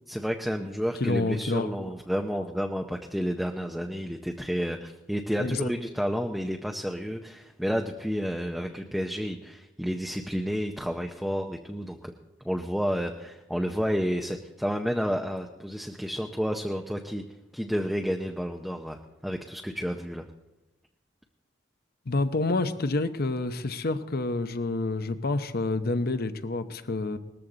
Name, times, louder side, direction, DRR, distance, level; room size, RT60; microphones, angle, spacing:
voice 1, 0.1-12.1 12.4-17.2 17.5-20.2, equal, ahead, 3 dB, 0.6 m, -30 dB
voice 2, 1.0-1.9 5.4-5.7 22.1-27.2, left 2 dB, 55° left, 11 dB, 0.8 m, -28 dB
19.0 x 14.0 x 3.9 m, 1.0 s
head